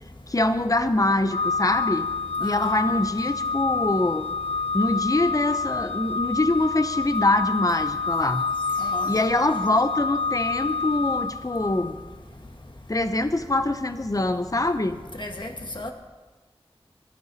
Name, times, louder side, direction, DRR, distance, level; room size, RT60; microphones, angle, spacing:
voice 1, 0.3-2.1 2.4-4.3 4.7-8.5 9.0-12.0 12.9-15.0, left 2 dB, 35° left, 9 dB, 0.8 m, -24 dB
Organ, 1.3-12.0, left 4 dB, 80° left, 0.4 m, -28 dB
voice 2, 2.4-2.8 8.8-9.1 15.2-15.5 15.8-15.9, left 1 dB, 50° left, 3 dB, 1.8 m, -34 dB
19.5 x 13.0 x 4.1 m, 1.3 s
wide cardioid pair, 50°, 10 cm